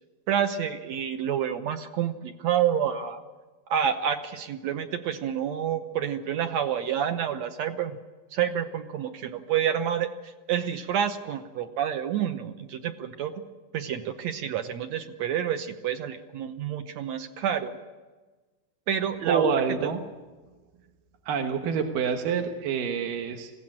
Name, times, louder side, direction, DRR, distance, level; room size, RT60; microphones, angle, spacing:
voice 1, 0.3-3.2 3.7-8.0 8.3-13.3 13.7-17.8 18.9-19.9, right 9 dB, 70° right, 7 dB, 1.9 m, -28 dB
voice 2, 19.3-20.0 21.3-23.5, right 6 dB, 90° right, 5 dB, 3.0 m, -27 dB
21.0 x 16.0 x 8.7 m, 1.3 s
omnidirectional pair, 3.7 m